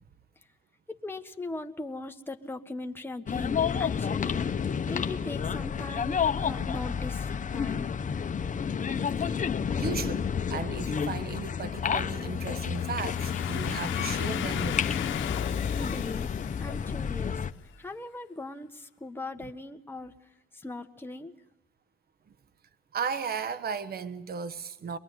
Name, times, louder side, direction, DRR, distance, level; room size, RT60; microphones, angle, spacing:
voice 1, 0.9-7.9 15.8-16.3 16.6-17.4 17.8-20.2 20.5-21.3, left 2 dB, 10° left, 1.5 m, -39 dB
sound 1, 3.3-17.5, left 7 dB, 40° left, 1.0 m, -30 dB
voice 2, 9.7-15.0 22.9-25.0, right 6 dB, 50° right, 1.3 m, -35 dB
Domestic sounds home sounds, 12.7-17.5, left 12 dB, 75° left, 1.0 m, -38 dB
23.5 x 22.0 x 9.6 m
cardioid pair, 90°, 20 cm